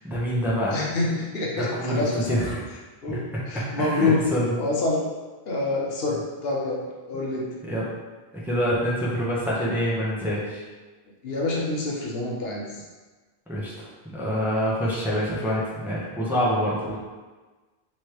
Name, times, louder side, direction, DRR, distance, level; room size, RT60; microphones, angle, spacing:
voice 1, 0.0-0.8 1.6-2.6 3.1-3.2 3.8-4.5 7.7-7.9 8.4-10.6 13.5-17.0, equal, ahead, -7 dB, 0.8 m, -26 dB
voice 2, 0.7-2.4 3.0-4.3 4.6-5.1 5.5-7.5 11.2-12.8, left 2 dB, 70° left, -3 dB, 1.0 m, -27 dB
3.2 x 3.2 x 4.6 m, 1.3 s
omnidirectional pair, 1.1 m